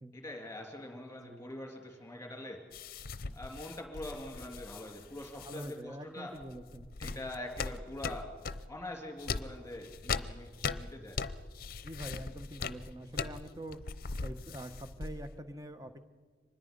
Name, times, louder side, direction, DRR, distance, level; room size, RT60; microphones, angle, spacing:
voice 1, 0.1-2.7 3.3-6.4 7.0-8.4 8.7-11.3, left 1 dB, 15° left, 3 dB, 3.0 m, -44 dB
sound 1, 2.7-5.7 6.4-8.7 9.2-15.4, left 4 dB, 55° left, 0.7 m, -40 dB
voice 2, 5.5-6.9 11.8-13.8 14.2-16.0, right 1 dB, 20° right, 8 dB, 1.1 m, -45 dB
25.0 x 20.5 x 5.4 m, 1.5 s
head